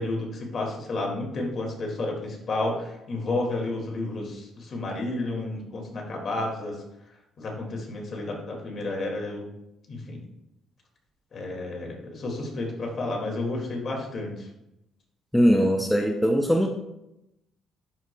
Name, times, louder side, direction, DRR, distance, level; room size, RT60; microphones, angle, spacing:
voice 1, 0.0-6.8 7.4-9.5 9.9-10.2 11.3-14.5, left 2 dB, 45° left, 0 dB, 2.0 m, -31 dB
voice 2, 15.3-16.7, equal, 5° left, 2 dB, 0.6 m, -20 dB
11.0 x 4.9 x 2.2 m, 0.86 s
cardioid pair, 100°, 0 cm